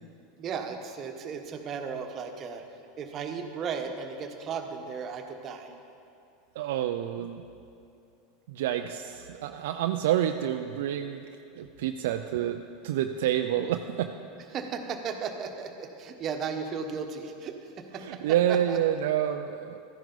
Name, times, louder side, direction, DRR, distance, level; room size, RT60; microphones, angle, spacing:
voice 1, 0.4-2.6 3.0-5.7 14.5-18.2 18.5-18.8, right 6 dB, 40° right, 5 dB, 1.1 m, -35 dB
voice 2, 6.6-7.4 8.5-11.3 11.6-14.1 18.0-19.8, right 11 dB, 70° right, 6 dB, 0.4 m, -28 dB
13.0 x 10.5 x 4.0 m, 2.6 s
hypercardioid pair, 95°, 0 cm